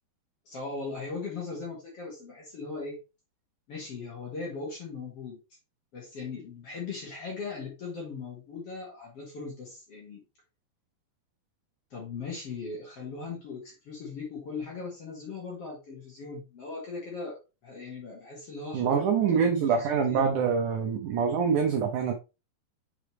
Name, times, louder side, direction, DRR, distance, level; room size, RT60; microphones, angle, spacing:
voice 1, 0.5-3.0 3.7-5.4 5.9-10.2 11.9-20.3, left 4 dB, 50° left, 2.1 m, -39 dB
voice 2, 18.7-22.1, right 6 dB, 80° right, 1.8 m, -25 dB
6.2 x 5.1 x 3.1 m
omnidirectional pair, 4.7 m